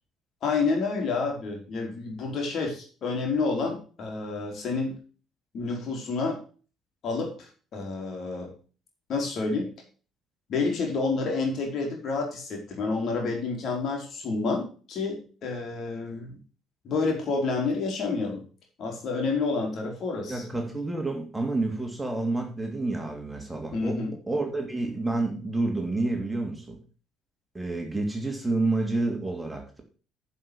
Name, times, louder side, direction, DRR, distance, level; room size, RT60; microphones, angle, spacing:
voice 1, 0.4-5.0 5.5-6.4 7.0-8.5 9.1-9.7 10.5-16.4 16.8-18.4 18.8-20.4 23.7-24.2, left 4 dB, 50° left, 1 dB, 3.8 m, -29 dB
voice 2, 20.3-24.0 24.3-26.8 27.5-29.8, right 2 dB, 10° right, 3 dB, 2.8 m, -29 dB
10.5 x 5.6 x 6.3 m, 0.38 s
figure-of-eight pair, 50°, 0 cm